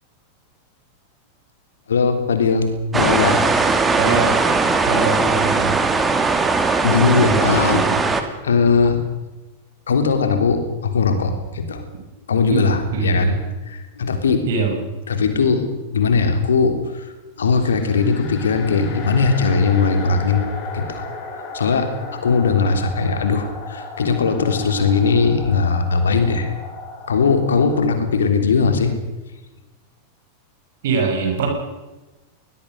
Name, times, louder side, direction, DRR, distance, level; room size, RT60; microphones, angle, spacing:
voice 1, 1.9-3.4 6.8-7.8 8.4-9.0 9.9-11.8 12.3-13.3 13.7-14.4 15.1-17.1 17.4-20.4 20.7-21.0 21.5-26.5 27.1-28.9, left 5 dB, 70° left, 7 dB, 3.5 m, -19 dB
sound 1, 2.9-8.2, right 4 dB, 15° right, 2.5 m, -19 dB
voice 2, 4.0-4.4 4.9-5.8 7.3-7.9 12.5-13.4 14.5-14.8 30.8-31.5, right 5 dB, 55° right, 3 dB, 7.0 m, -23 dB
sound 2, 17.4-27.9, left 3 dB, 40° left, 5.5 m, -35 dB
22.0 x 20.5 x 6.6 m, 1.1 s
figure-of-eight pair, 90°, 0 cm